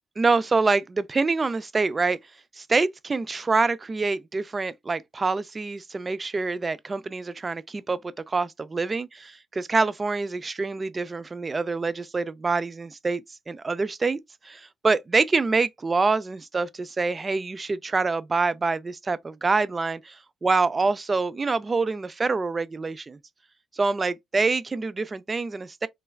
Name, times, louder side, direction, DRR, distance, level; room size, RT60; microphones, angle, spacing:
voice 1, 0.2-2.2 2.6-8.0 8.3-13.2 13.5-14.2 14.4-20.1 20.4-23.2 23.8-25.9, right 4 dB, 30° right, 0.3 m, -26 dB
3.2 x 2.3 x 2.2 m
cardioid pair, 90°, 0 cm